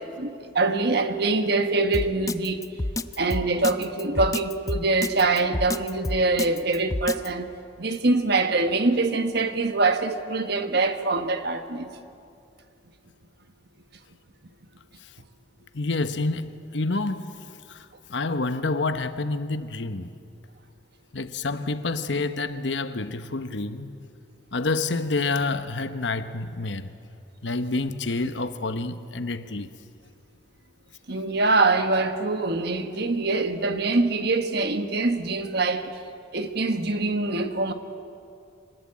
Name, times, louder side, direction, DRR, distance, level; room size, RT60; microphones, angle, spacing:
voice 1, 0.1-2.6 3.2-7.5 7.8-11.9 31.1-35.9 36.3-37.7, right 3 dB, 60° right, 1.5 m, -24 dB
Drum kit, 1.9-7.3, left 2 dB, 20° left, 0.6 m, -28 dB
voice 2, 15.7-20.1 21.1-24.0 24.5-26.9 27.4-29.7, left 3 dB, 75° left, 1.1 m, -28 dB
26.0 x 19.0 x 8.7 m
head